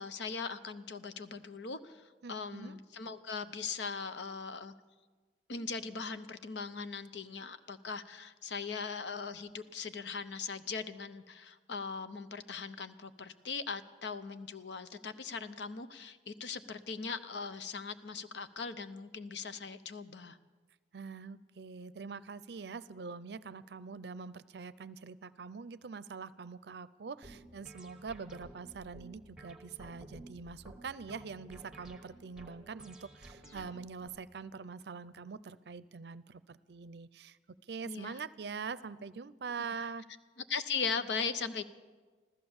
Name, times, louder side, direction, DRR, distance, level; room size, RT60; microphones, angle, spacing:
voice 1, 0.0-2.0 2.3-4.7 5.5-20.4 37.8-38.2 39.8-39.9 40.5-41.6, left 5 dB, 80° left, 11 dB, 0.7 m, -39 dB
voice 2, 2.2-2.8 20.9-37.4 37.7-40.1, right 5 dB, 70° right, 17 dB, 0.5 m, -44 dB
sound 1, 27.2-34.1, right 1 dB, 5° right, 1.3 m, -53 dB
15.0 x 13.5 x 7.1 m, 1.4 s
head